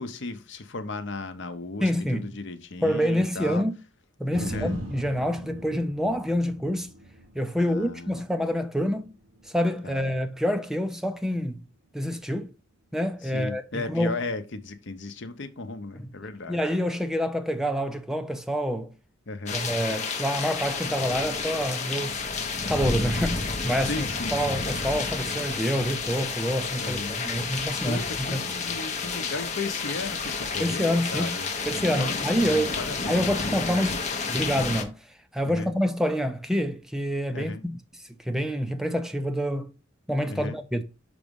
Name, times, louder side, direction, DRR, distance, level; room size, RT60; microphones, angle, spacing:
voice 1, 0.0-3.6 4.4-4.8 7.6-8.2 9.8-10.1 13.2-16.6 19.3-19.6 23.8-24.4 26.8-27.2 27.8-31.5 31.9-34.0 35.5-35.7 37.3-37.6 40.3-40.6, left 3 dB, 60° left, 0.8 m, -35 dB
voice 2, 1.8-2.3 2.8-3.7 4.2-6.9 7.4-9.1 9.4-11.6 11.9-12.5 12.9-14.1 15.9-16.0 16.5-18.9 19.5-22.2 22.7-28.0 28.3-28.4 30.6-31.4 31.7-32.8 33.1-34.0 34.3-37.8 38.2-39.7 40.1-40.8, equal, ahead, 0.4 m, -27 dB
sound 1, 4.3-12.5 13.0-13.1, right 1 dB, 75° right, 4.2 m, -42 dB
sound 2, 19.5-34.8, left 4 dB, 35° left, 0.9 m, -30 dB
6.0 x 5.0 x 5.2 m
head